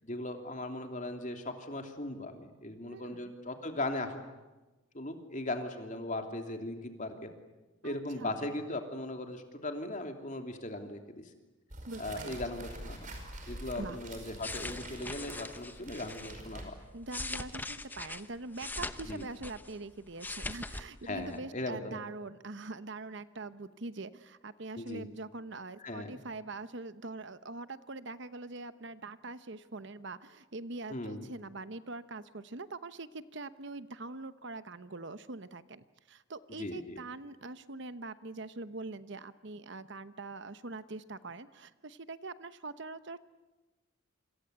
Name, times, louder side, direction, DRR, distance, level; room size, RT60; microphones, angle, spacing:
voice 1, 0.0-4.2 4.9-7.3 7.8-11.2 12.0-13.1 13.5-16.7 19.1-19.2 21.0-22.0 24.8-25.1 25.8-26.2 30.9-31.3 36.6-37.0, left 2 dB, 35° left, 5 dB, 3.0 m, -38 dB
voice 2, 2.9-3.3 7.8-8.4 11.9-12.4 13.8-14.0 16.9-43.2, right 3 dB, 55° right, 13 dB, 1.0 m, -43 dB
sound 1, 11.7-17.0, right 1 dB, 40° right, 5.3 m, -46 dB
sound 2, 14.3-16.4 16.9-19.8 20.1-20.9 21.1-21.4, left 2 dB, 10° left, 0.9 m, -41 dB
27.5 x 26.0 x 8.2 m, 1.1 s
head